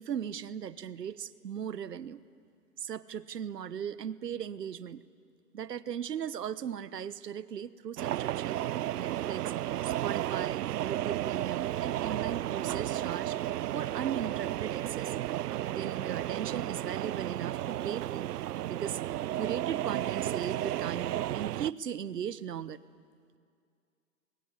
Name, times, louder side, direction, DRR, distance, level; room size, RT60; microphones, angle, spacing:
voice 1, 0.0-2.2 2.8-5.0 5.5-8.6 8.9-9.4 9.8-13.4 13.7-15.2 15.7-18.3 18.7-19.0 19.3-22.8, right 9 dB, 90° right, 16 dB, 1.2 m, -37 dB
sound 1, 8.0-21.7, right 13 dB, 75° right, 0.6 m, -33 dB
24.0 x 22.0 x 9.8 m, 2.3 s
hypercardioid pair, 165°, 47 cm